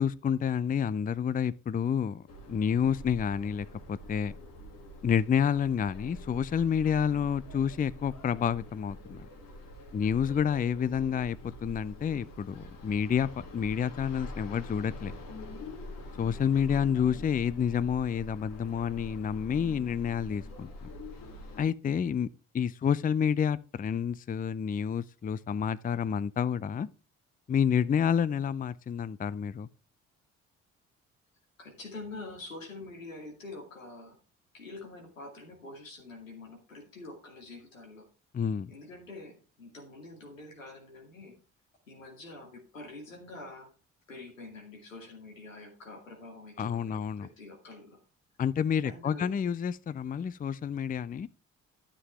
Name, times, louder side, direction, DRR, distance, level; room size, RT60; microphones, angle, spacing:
voice 1, 0.0-4.3 5.0-9.3 9.9-15.1 16.2-20.7 21.6-22.3 22.5-26.9 27.5-29.7 38.3-38.7 46.6-47.3 48.4-51.3, left 7 dB, 20° left, 0.5 m, -29 dB
sound 1, 2.3-21.6, left 1 dB, 60° left, 2.2 m, -45 dB
voice 2, 31.6-34.2 34.5-38.1 38.7-41.3 41.9-43.7 44.1-48.0 48.8-49.4, left 2 dB, 90° left, 2.3 m, -46 dB
12.5 x 7.6 x 3.3 m
figure-of-eight pair, 45°, 38 cm